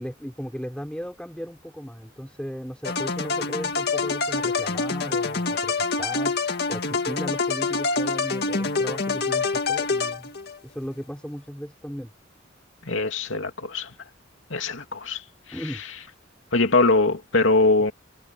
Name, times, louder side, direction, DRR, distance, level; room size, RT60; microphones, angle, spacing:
voice 1, 0.0-6.4 6.7-10.3 10.6-12.1 15.5-15.8, equal, 5° left, 5.6 m, -36 dB
sound 1, 2.8-10.6, left 4 dB, 55° left, 2.0 m, -26 dB
voice 2, 12.9-13.9 14.5-15.2 16.5-17.9, left 3 dB, 80° left, 2.7 m, -21 dB
head